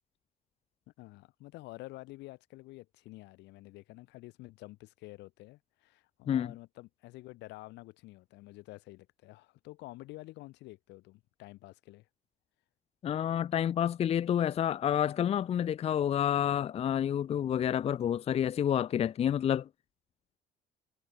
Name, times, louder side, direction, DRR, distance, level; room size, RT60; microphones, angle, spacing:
voice 1, 1.0-12.1, left 19 dB, 85° left, 3.6 m, -49 dB
voice 2, 13.0-19.7, left 9 dB, 35° left, 0.6 m, -29 dB
cardioid pair, 145°, 18 cm